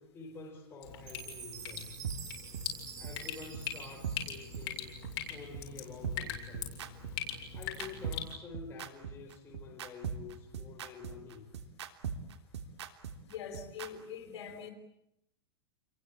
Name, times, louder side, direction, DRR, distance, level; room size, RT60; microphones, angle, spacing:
voice 1, 0.0-1.9 3.0-5.0 5.3-6.9 7.5-11.5, left 4 dB, 15° left, -1 dB, 5.0 m, -49 dB
Drip, 0.8-8.3, left 8 dB, 50° left, 7.3 m, -42 dB
Chime, 1.1-5.3, right 8 dB, 25° right, 3.0 m, -49 dB
sound 1, 2.0-2.1 2.5-2.6 3.0-3.1 3.5-3.6 4.0-4.2 4.5-4.6 5.0-5.1 5.5-5.6 6.0-13.9, right 8 dB, 90° right, 3.3 m, -39 dB
voice 2, 13.2-14.7, left 7 dB, 70° left, 4 dB, 4.7 m, -43 dB
29.5 x 23.0 x 8.6 m, 0.82 s
supercardioid pair, 160°, 14 cm